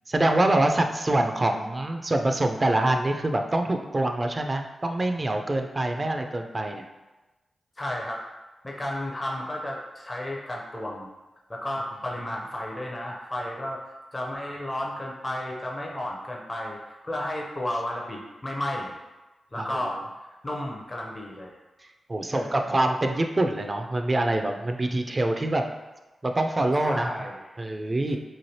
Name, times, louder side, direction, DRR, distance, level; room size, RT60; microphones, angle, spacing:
voice 1, 0.1-6.8 19.5-19.7 22.1-25.6 26.2-27.1 27.6-28.2, right 1 dB, 35° right, 5 dB, 0.3 m, -25 dB
voice 2, 7.8-8.2 8.6-11.1 11.5-13.8 14.1-19.0 19.5-20.0 20.4-21.5 22.3-22.6 26.8-27.4 28.1-28.2, left 1 dB, 30° left, -2 dB, 0.5 m, -33 dB
3.1 x 2.5 x 2.7 m, 1.1 s
supercardioid pair, 40°, 0 cm